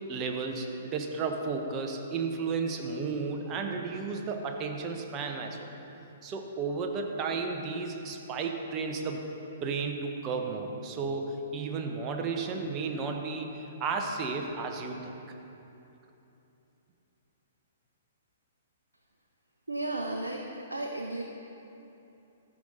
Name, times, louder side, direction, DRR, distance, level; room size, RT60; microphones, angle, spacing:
voice 1, 0.1-5.6 6.2-9.3 9.6-13.5 13.8-15.1, right 4 dB, 25° right, 3 dB, 0.9 m, -33 dB
voice 2, 19.7-21.2, right 2 dB, 80° right, 1 dB, 0.7 m, -34 dB
14.5 x 5.4 x 3.9 m, 2.9 s
figure-of-eight pair, 115°, 0 cm